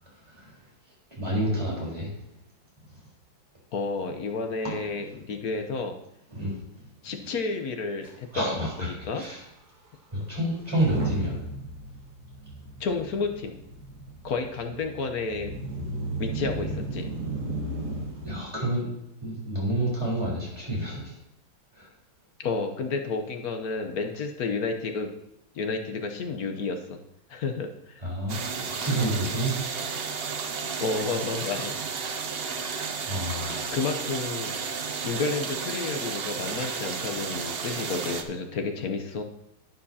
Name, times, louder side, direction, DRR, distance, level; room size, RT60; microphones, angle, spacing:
voice 1, 0.2-0.6 1.2-2.1 6.3-6.5 7.2-7.3 8.3-9.4 10.1-11.4 18.2-18.9 19.2-21.1 21.7-21.9 28.0-28.4 28.7-29.5 33.1-33.8, right 1 dB, 15° right, -6 dB, 4.0 m, -29 dB
voice 2, 3.7-5.9 7.0-9.2 12.8-13.6 14.2-15.6 16.2-17.1 22.4-25.1 25.5-27.0 27.3-28.0 30.8-31.8 33.7-34.6 35.0-39.2, left 4 dB, 60° left, 5 dB, 1.2 m, -31 dB
Motor vehicle (road) / Engine starting / Accelerating revving vroom, 8.0-8.1 8.3-8.6 9.2-9.3 10.6-18.4, right 2 dB, 60° right, 2.5 m, -35 dB
sound 1, 28.3-38.2, right 5 dB, 90° right, 0.5 m, -32 dB
11.0 x 9.2 x 2.8 m, 0.79 s
omnidirectional pair, 2.1 m